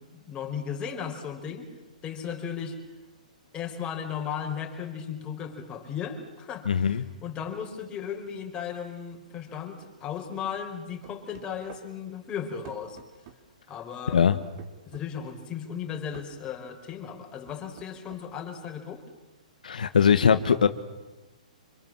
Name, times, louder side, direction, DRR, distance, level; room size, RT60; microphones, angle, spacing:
voice 1, 0.0-1.7 2.0-2.8 3.5-13.0 13.7-14.2 14.8-19.0, left 7 dB, 20° left, 3 dB, 4.9 m, -36 dB
voice 2, 6.7-7.0 14.1-14.4 19.6-20.7, left 7 dB, 80° left, 9 dB, 1.4 m, -21 dB
sound 1, 11.0-11.9 12.6-13.4 14.6-15.1 16.1-16.3 17.5-18.3, right 8 dB, 45° right, 3.8 m, -48 dB
27.0 x 25.5 x 7.6 m, 1.1 s
hypercardioid pair, 135°, 4 cm